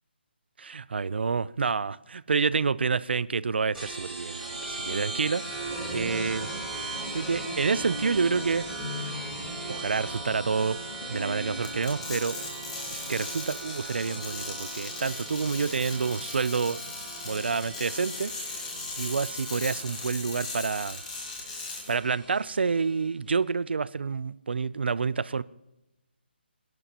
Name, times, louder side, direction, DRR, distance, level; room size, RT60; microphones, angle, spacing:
voice 1, 0.6-5.4 5.9-6.5 7.1-8.6 9.7-10.8 11.1-12.4 12.9-16.8 17.2-18.6 19.0-21.0 21.6-25.4, right 5 dB, 70° right, 0.7 m, -28 dB
sound 1, 3.7-22.9, right 2 dB, ahead, 3.5 m, -38 dB
sound 2, 6.5-11.9, left 2 dB, 75° left, 1.5 m, -41 dB
sound 3, 11.6-21.9, left 3 dB, 35° left, 6.1 m, -38 dB
26.5 x 11.0 x 3.0 m
hypercardioid pair, 165°, 6 cm